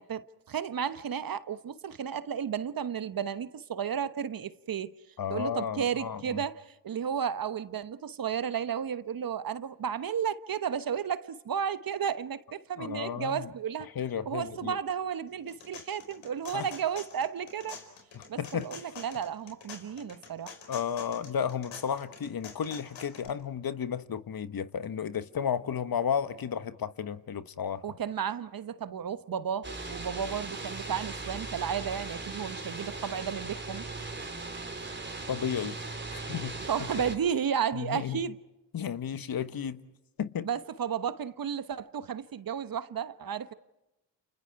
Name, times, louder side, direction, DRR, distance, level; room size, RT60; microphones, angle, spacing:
voice 1, 0.0-4.9 5.3-13.9 14.3-17.8 18.3-20.5 27.8-33.8 36.7-38.4 40.4-43.5, right 8 dB, 45° right, 1.1 m, -33 dB
voice 2, 5.2-6.4 12.8-13.5 13.9-14.8 16.5-16.7 18.1-18.7 20.7-27.8 35.3-35.8 36.1-36.5 37.7-38.2 38.7-39.8 40.2-40.5, left 8 dB, 50° left, 1.4 m, -33 dB
sound 1, 15.3-23.3, left 6 dB, 75° left, 4.9 m, -47 dB
sound 2, 29.6-37.2, right 3 dB, 25° right, 3.5 m, -39 dB
29.5 x 28.5 x 4.7 m
supercardioid pair, 55°, 46 cm